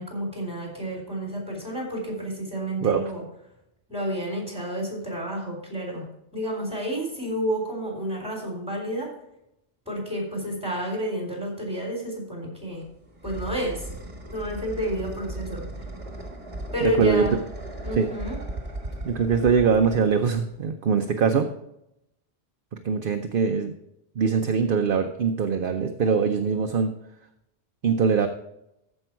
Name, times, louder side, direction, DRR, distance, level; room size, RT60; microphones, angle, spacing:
voice 1, 0.0-3.2 3.9-6.1 6.3-9.1 9.9-12.9 13.2-13.9 14.3-15.7 16.7-17.4 17.8-18.4, right 1 dB, 5° right, 0 dB, 3.7 m, -30 dB
sound 1, 12.6-20.6, right 1 dB, 30° right, 1.6 m, -37 dB
voice 2, 16.8-17.2 17.9-18.1 19.0-21.5 22.8-23.7 24.2-26.9 27.8-28.3, right 6 dB, 55° right, 6 dB, 0.8 m, -22 dB
14.0 x 5.4 x 4.5 m, 0.83 s
omnidirectional pair, 1.2 m